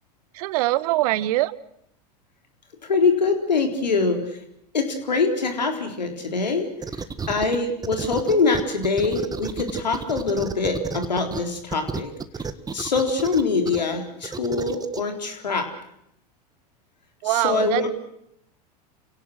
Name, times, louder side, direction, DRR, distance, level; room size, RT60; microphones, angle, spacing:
voice 1, 0.3-1.6 17.2-17.9, right 17 dB, 60° right, 18 dB, 1.1 m, -23 dB
voice 2, 2.9-4.2 4.7-6.7 7.3-12.1 12.7-15.6 17.3-17.9, left 4 dB, 85° left, 5 dB, 3.9 m, -23 dB
sound 1, 6.8-7.6 7.8-11.4 11.7-13.8 14.2-15.0, right 5 dB, 20° right, 1.5 m, -31 dB
29.0 x 17.5 x 6.5 m, 0.75 s
hypercardioid pair, 85°, 21 cm